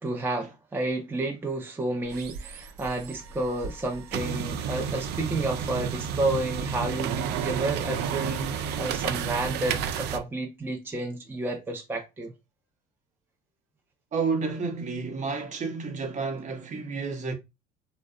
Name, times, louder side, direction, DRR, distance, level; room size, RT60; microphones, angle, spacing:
voice 1, 0.0-12.3, right 2 dB, 10° right, 0.5 m, -31 dB
sound 1, 2.0-10.2, right 7 dB, 60° right, 0.4 m, -31 dB
voice 2, 14.1-17.3, right 4 dB, 40° right, 0.8 m, -30 dB
2.6 x 2.1 x 2.4 m
hypercardioid pair, 75°, 19 cm